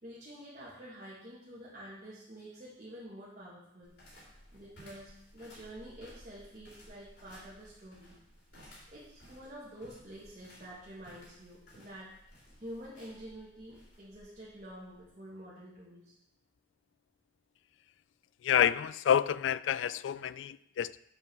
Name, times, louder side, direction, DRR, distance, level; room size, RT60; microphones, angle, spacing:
voice 1, 0.0-3.9 4.3-8.2 8.9-12.1 12.6-16.2, equal, 40° right, -8 dB, 2.0 m, -48 dB
sound 1, 3.8-15.1, equal, 65° left, 3.8 m, -57 dB
voice 2, 18.4-21.0, left 9 dB, 80° left, 18 dB, 0.3 m, -28 dB
7.5 x 5.8 x 6.1 m, 0.78 s
head